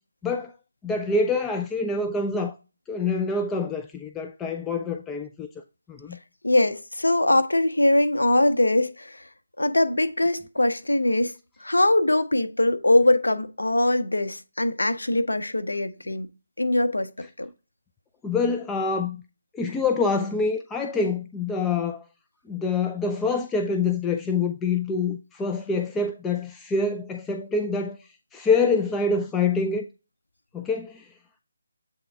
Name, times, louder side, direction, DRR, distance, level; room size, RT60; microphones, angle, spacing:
voice 1, 0.8-2.5 2.9-5.5 5.9-6.2 18.2-19.2 19.5-22.0 22.5-28.0 28.3-29.8 30.5-31.1, left 4 dB, 10° left, 0.3 m, -26 dB
voice 2, 6.4-9.3 9.6-11.3 11.6-16.3 16.6-17.1 17.4-17.5, left 1 dB, 85° left, 0.7 m, -22 dB
7.7 x 3.6 x 3.4 m
figure-of-eight pair, 155°, 0 cm